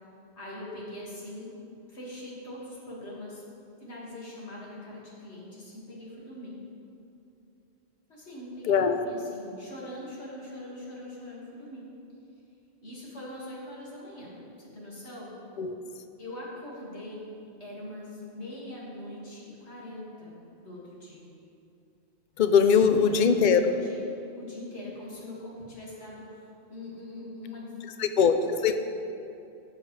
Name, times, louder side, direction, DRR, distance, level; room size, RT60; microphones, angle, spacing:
voice 1, 0.4-1.5 1.9-3.4 3.8-6.6 8.1-11.8 12.8-15.4 16.2-17.3 17.6-21.3 22.9-24.0 24.4-27.9, left 1 dB, 85° left, -6 dB, 2.3 m, -42 dB
voice 2, 8.7-9.1 15.6-15.7 22.4-23.6 28.0-28.8, left 6 dB, 55° left, 8 dB, 0.6 m, -21 dB
12.5 x 7.3 x 3.2 m, 2.7 s
omnidirectional pair, 1.1 m